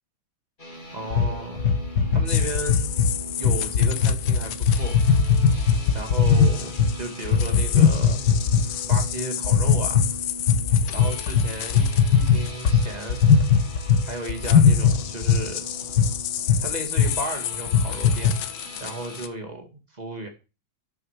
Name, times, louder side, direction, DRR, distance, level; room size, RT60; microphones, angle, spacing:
sound 1, 0.6-19.3, right 1 dB, 25° left, 2.6 m, -42 dB
voice 1, 0.9-1.6 2.1-2.9 3.4-5.0 5.9-8.3 8.9-10.1 10.9-13.2 14.0-15.6 16.6-18.4 18.8-20.3, right 1 dB, 20° right, 3 dB, 2.1 m, -34 dB
sound 2, 1.1-6.9 7.2-9.0 9.4-10.1 10.5-14.0 14.3-15.5 16.0-16.1 16.5-16.7 17.0-17.1 17.5-18.3, left 6 dB, 60° left, 1.8 m, -19 dB
sound 3, 2.3-19.3, left 12 dB, 80° left, 1.6 m, -34 dB
12.5 x 6.1 x 4.9 m, 0.30 s
omnidirectional pair, 2.2 m